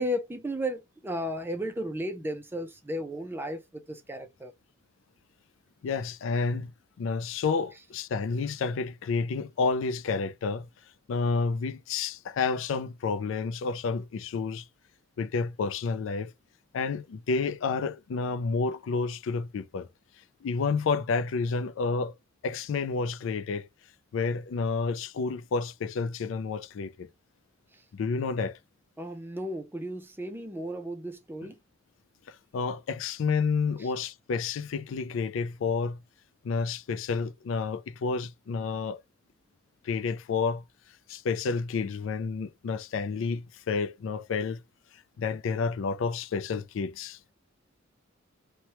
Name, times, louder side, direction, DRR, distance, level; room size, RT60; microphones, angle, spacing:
voice 1, 0.0-4.5 27.7-27.8 29.0-31.6 33.8-33.9, equal, 10° right, 0.4 m, -34 dB
voice 2, 5.8-6.7 7.0-10.7 11.1-14.7 15.2-16.3 16.7-19.9 20.4-22.1 22.4-23.7 24.1-27.1 27.9-28.6 32.3-36.0 36.4-39.0 39.8-40.6 41.1-44.6 45.2-47.2, left 4 dB, 65° left, 0.3 m, -30 dB
3.0 x 2.2 x 2.8 m
head